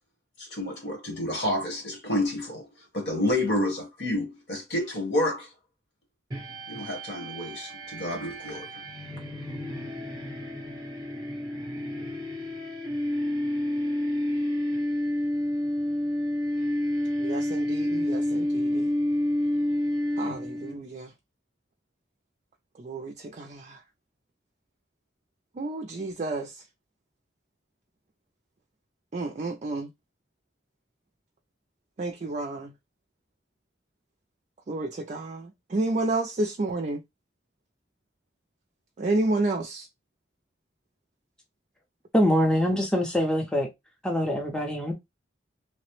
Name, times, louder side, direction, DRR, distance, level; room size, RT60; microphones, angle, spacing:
voice 1, 0.4-2.7 2.9-5.5 6.7-8.7, left 1 dB, 65° left, 1.4 m, -29 dB
sound 1, 6.3-20.8, left 1 dB, 25° right, 0.8 m, -29 dB
voice 2, 17.2-18.9 20.2-21.1 22.8-23.8 25.6-26.5 29.1-29.9 32.0-32.7 34.7-37.0 39.0-39.9, right 2 dB, 40° right, 0.4 m, -30 dB
voice 3, 42.1-43.7 44.0-44.9, equal, 5° left, 0.5 m, -24 dB
3.1 x 2.0 x 3.0 m
head